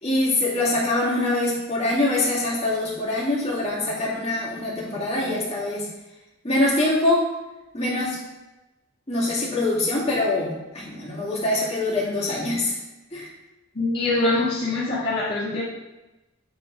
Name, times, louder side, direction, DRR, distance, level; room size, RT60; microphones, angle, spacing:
voice 1, 0.0-5.9 6.4-7.2 7.7-8.2 9.1-12.8 13.1-13.3, left 2 dB, 30° left, -7 dB, 2.5 m, -24 dB
voice 2, 5.0-5.4 13.7-15.6, left 2 dB, 50° left, -9 dB, 1.9 m, -24 dB
8.7 x 4.4 x 5.3 m, 1.0 s
head